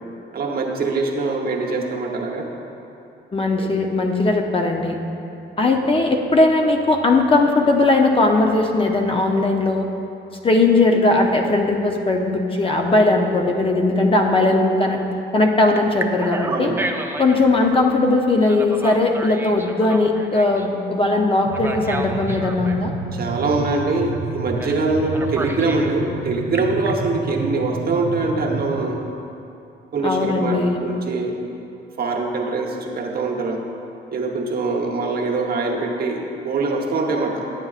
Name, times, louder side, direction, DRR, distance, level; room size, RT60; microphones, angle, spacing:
voice 1, 0.3-2.5 3.6-3.8 5.6-5.8 16.5-16.8 23.1-29.0 29.9-31.4 32.0-33.6 34.1-37.4, right 3 dB, 50° right, 0 dB, 1.0 m, -23 dB
voice 2, 3.3-5.0 5.6-9.9 10.4-15.0 15.3-16.7 17.2-22.9 30.0-30.8, left 2 dB, 25° left, 2 dB, 0.6 m, -18 dB
Telephone, 12.9-15.1 15.7-17.4 18.4-20.7 21.5-22.8 24.6-24.8 25.1-25.9 26.3-26.9, right 2 dB, 10° right, 0.5 m, -31 dB
sound 1, 21.4-28.8, right 4 dB, 80° right, 0.6 m, -30 dB
10.5 x 7.5 x 2.4 m, 2.8 s
cardioid pair, 90°, 20 cm